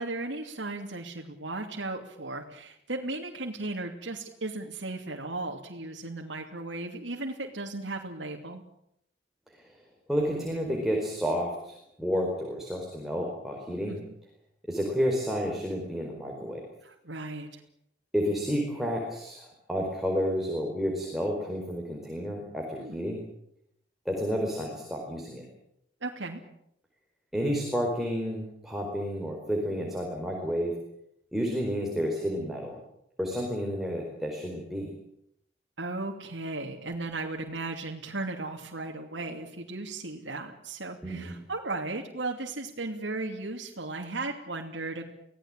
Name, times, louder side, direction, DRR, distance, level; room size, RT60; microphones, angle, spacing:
voice 1, 0.0-8.6 13.9-14.0 16.8-17.6 22.8-23.0 26.0-26.4 35.8-45.1, right 2 dB, 85° right, 2 dB, 2.8 m, -36 dB
voice 2, 10.1-14.0 14.7-16.7 18.1-23.2 24.0-25.5 27.3-30.8 31.3-32.8 33.2-34.9 41.0-41.4, equal, ahead, 0 dB, 4.6 m, -30 dB
25.0 x 18.0 x 9.0 m, 0.75 s
head